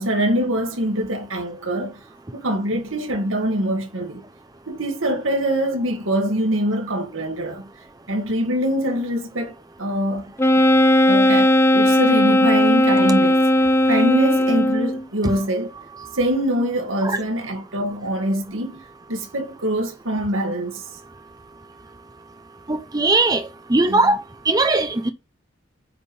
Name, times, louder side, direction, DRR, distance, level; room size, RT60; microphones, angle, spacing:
voice 1, 0.0-2.0 2.3-4.2 4.7-7.7 8.1-10.3 11.1-13.4 13.9-15.7 16.1-18.8 19.1-20.8 23.9-24.0, right 1 dB, 80° right, 2.4 m, -24 dB
Wind instrument woodwind instrument, 10.4-15.0, left 1 dB, 15° left, 0.6 m, -16 dB
voice 2, 22.7-25.1, right 2 dB, 20° right, 0.8 m, -20 dB
8.5 x 5.2 x 5.4 m
head